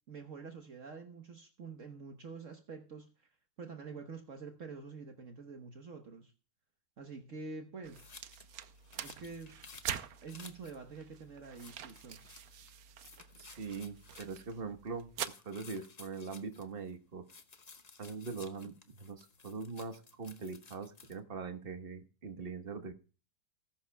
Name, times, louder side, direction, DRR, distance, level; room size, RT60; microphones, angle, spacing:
voice 1, 0.1-3.3 3.6-6.3 7.0-8.0 9.0-9.6 10.2-12.2, right 4 dB, 55° right, 1.5 m, -47 dB
sound 1, 7.8-15.3, right 9 dB, 70° right, 1.2 m, -45 dB
sound 2, 7.9-10.8 11.1-11.2 11.5-12.7 13.0-14.6 15.2-16.9 17.3-21.2, left 4 dB, 30° left, 0.8 m, -56 dB
voice 2, 13.4-15.1 15.4-17.2 18.0-22.9, right 4 dB, 40° right, 1.5 m, -42 dB
19.5 x 11.5 x 2.3 m
omnidirectional pair, 1.6 m